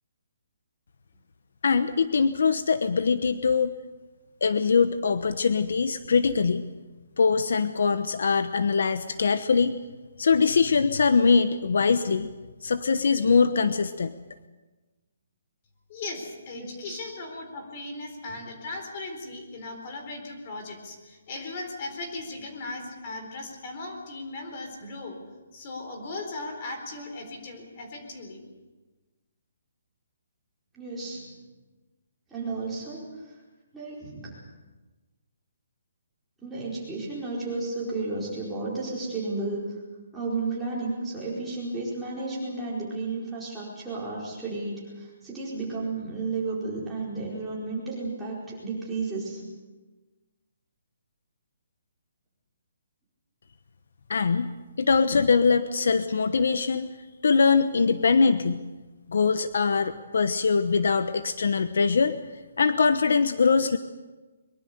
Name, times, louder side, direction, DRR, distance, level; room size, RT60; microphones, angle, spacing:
voice 1, 1.6-3.7 4.4-6.6 7.2-9.7 10.2-12.3 12.6-14.1 54.1-56.9 57.2-58.6 59.1-62.2 62.6-63.8, left 5 dB, 55° left, 11 dB, 1.0 m, -22 dB
voice 2, 15.9-25.2 25.5-28.4, left 2 dB, 25° left, 3 dB, 4.2 m, -38 dB
voice 3, 16.5-17.0 18.3-18.4 30.7-31.3 32.3-33.0 33.7-34.4 36.4-39.7 40.1-49.4, right 3 dB, 5° right, -7 dB, 4.7 m, -32 dB
23.5 x 23.0 x 6.9 m, 1.2 s
hypercardioid pair, 180°, 0 cm